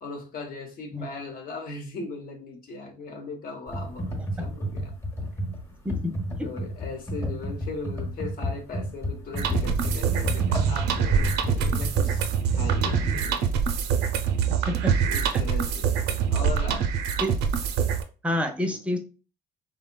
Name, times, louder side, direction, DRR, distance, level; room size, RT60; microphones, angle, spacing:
voice 1, 0.0-4.9 6.4-12.2 12.5-13.5 14.5-17.0, left 3 dB, 60° left, 0.9 m, -38 dB
Computer keyboard, 3.7-13.2, equal, 15° left, 0.8 m, -31 dB
voice 2, 5.8-6.5 7.2-7.4 14.7-15.0 15.3-15.4 17.2-17.4 18.2-19.0, left 1 dB, 5° right, 0.5 m, -29 dB
sound 1, 9.4-18.0, right 7 dB, 85° right, 0.5 m, -25 dB
3.5 x 2.1 x 2.2 m
cardioid pair, 110°, 17 cm